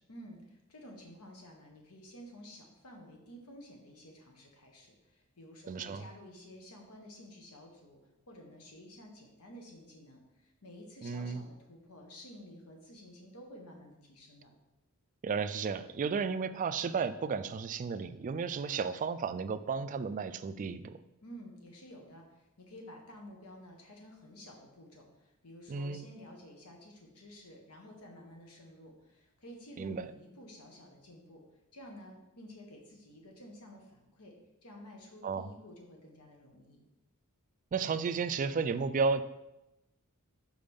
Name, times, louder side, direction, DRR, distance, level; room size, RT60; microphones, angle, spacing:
voice 1, 0.1-8.0 8.3-14.5 21.2-31.4 31.7-34.3 34.6-36.8, equal, 80° left, 2 dB, 1.4 m, -52 dB
voice 2, 5.7-6.0 11.0-11.4 15.2-21.0 25.7-26.1 29.8-30.1 35.2-35.5 37.7-39.2, right 5 dB, 35° right, 11 dB, 0.3 m, -33 dB
5.2 x 4.8 x 5.3 m, 0.95 s
head